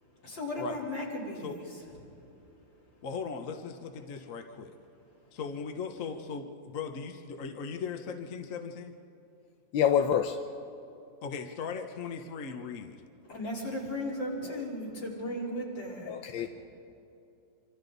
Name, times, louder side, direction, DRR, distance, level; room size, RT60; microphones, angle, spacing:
voice 1, 0.2-1.6 13.3-16.5, left 1 dB, 70° left, -4 dB, 4.7 m, -36 dB
voice 2, 3.0-4.7 5.3-8.9 11.2-13.0, left 5 dB, 50° left, 5 dB, 1.3 m, -38 dB
voice 3, 9.7-10.4 14.5-14.6 16.1-16.5, left 8 dB, 85° left, 5 dB, 1.5 m, -26 dB
26.0 x 25.5 x 4.0 m, 2.7 s
omnidirectional pair, 2.1 m